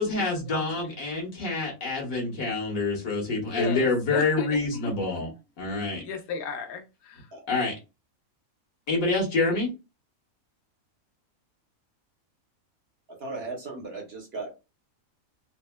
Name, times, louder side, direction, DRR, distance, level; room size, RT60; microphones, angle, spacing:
voice 1, 0.0-5.3 5.6-6.0 7.5-7.7 8.9-9.7, left 3 dB, 70° left, 1.7 m, -27 dB
voice 2, 3.4-4.9 5.3-5.4 5.8-7.3, left 5 dB, 90° left, 1.2 m, -35 dB
voice 3, 7.3-7.6 13.1-14.6, right 3 dB, 50° right, 1.0 m, -37 dB
4.1 x 2.1 x 2.2 m
omnidirectional pair, 1.5 m